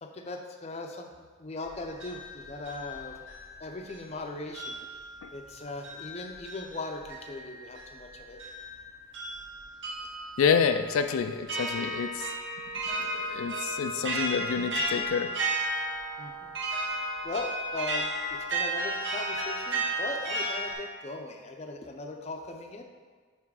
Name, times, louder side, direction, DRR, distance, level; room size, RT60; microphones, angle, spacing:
voice 1, 0.0-3.2 3.6-8.4 16.2-16.6 17.2-22.8, left 2 dB, 30° left, 3 dB, 0.5 m, -39 dB
sound 1, 1.6-4.2 4.5-20.7, right 1 dB, 60° right, 1.0 m, -34 dB
voice 2, 10.4-12.3 13.0-15.3, left 6 dB, 90° left, 8 dB, 0.4 m, -28 dB
5.9 x 4.4 x 4.7 m, 1.5 s
head